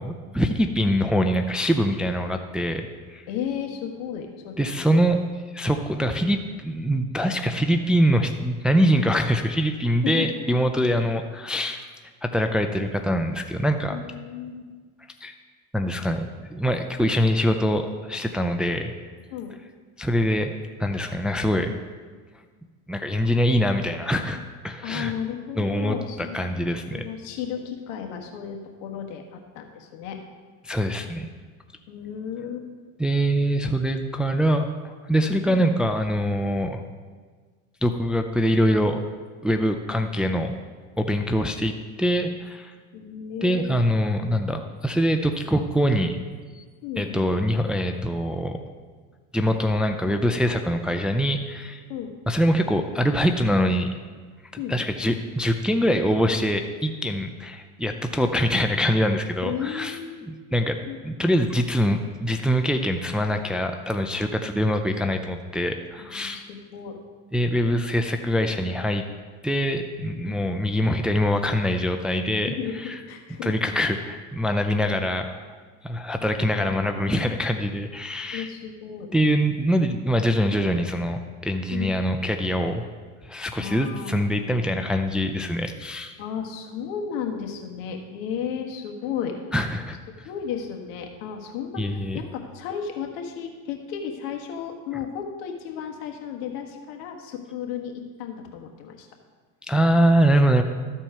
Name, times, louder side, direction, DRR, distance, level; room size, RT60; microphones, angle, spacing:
voice 1, 0.0-3.2 4.6-5.2 5.5-11.9 12.2-14.0 15.2-15.3 15.7-18.9 20.0-20.5 20.8-21.7 22.9-25.1 25.6-27.0 30.6-31.3 33.0-34.7 35.1-36.8 37.8-39.0 39.4-40.5 41.0-42.7 43.4-46.2 46.6-46.7 47.0-48.6 49.3-51.8 52.3-53.9 54.7-60.8 61.0-66.4 67.3-69.0 69.4-73.0 73.4-75.4 75.8-78.5 79.1-82.8 83.2-86.2 89.5-90.0 91.8-92.2 99.7-100.6, equal, ahead, 5 dB, 0.4 m, -24 dB
voice 2, 3.3-4.8 10.0-10.3 13.9-14.6 19.3-19.5 24.3-24.4 24.8-26.4 26.9-30.2 31.9-32.7 35.5-35.7 42.9-43.7 46.8-47.2 51.9-52.1 54.6-54.8 59.4-60.2 60.8-61.0 66.0-67.0 70.2-70.5 72.5-72.8 73.1-73.5 76.2-76.7 77.2-77.3 78.3-79.1 81.7-82.0 83.6-84.6 86.2-89.4 90.2-99.1, left 8 dB, 75° left, 3 dB, 1.5 m, -34 dB
13.5 x 4.5 x 5.5 m, 1.5 s
supercardioid pair, 110°, 39 cm